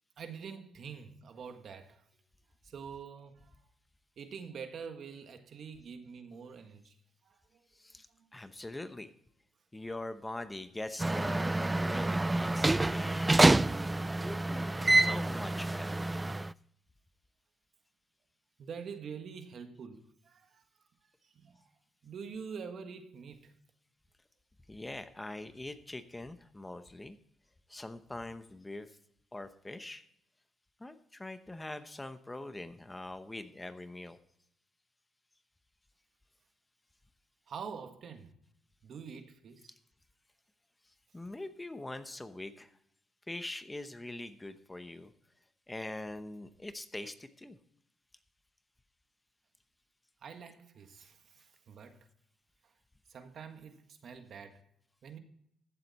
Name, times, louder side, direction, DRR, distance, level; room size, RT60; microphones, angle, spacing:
voice 1, 0.2-2.0 2.6-3.6 4.2-6.9 7.2-7.4 8.1-8.3 18.6-20.6 21.2-21.7 22.0-23.5 37.5-38.3 38.8-39.7 50.2-52.1 52.6-52.7 53.1-54.6 55.0-55.2, right 6 dB, 60° right, 1.6 m, -46 dB
voice 2, 7.7-8.1 8.3-9.1 9.7-13.5 14.2-16.0 24.7-27.2 27.7-29.0 29.3-30.0 30.8-34.2 41.1-42.7 43.3-45.1 45.7-47.6, left 2 dB, 15° left, 0.9 m, -43 dB
sound 1, 11.0-16.5, right 2 dB, 15° right, 0.3 m, -27 dB
15.0 x 7.7 x 4.2 m
cardioid pair, 95°, 0 cm